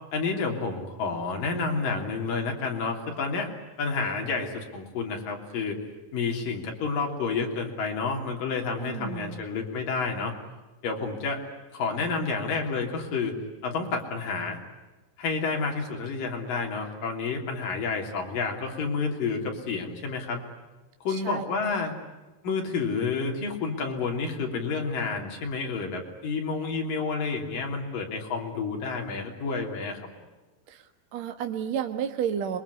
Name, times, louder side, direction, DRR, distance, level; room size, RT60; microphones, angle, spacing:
voice 1, 0.1-3.5 3.8-5.8 6.1-10.3 10.8-11.4 11.7-13.3 13.6-14.6 15.2-20.4 21.0-22.0 22.4-30.0, left 4 dB, 70° left, 2 dB, 4.9 m, -30 dB
voice 2, 8.7-9.4 21.1-21.4 30.7-30.8 31.1-32.6, right 8 dB, 55° right, 6 dB, 2.5 m, -31 dB
26.0 x 23.0 x 9.8 m, 1.2 s
omnidirectional pair, 4.0 m